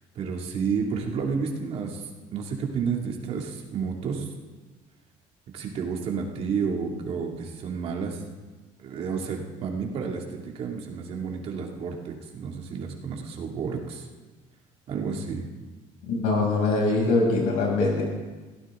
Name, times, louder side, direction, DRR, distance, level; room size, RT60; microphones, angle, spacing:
voice 1, 0.1-4.3 5.5-8.2 8.8-14.1 14.9-15.5, right 5 dB, 45° right, 1 dB, 2.5 m, -31 dB
voice 2, 16.1-18.0, left 3 dB, 90° left, -1 dB, 6.8 m, -23 dB
23.0 x 16.5 x 3.8 m, 1.3 s
cardioid pair, 160°, 14 cm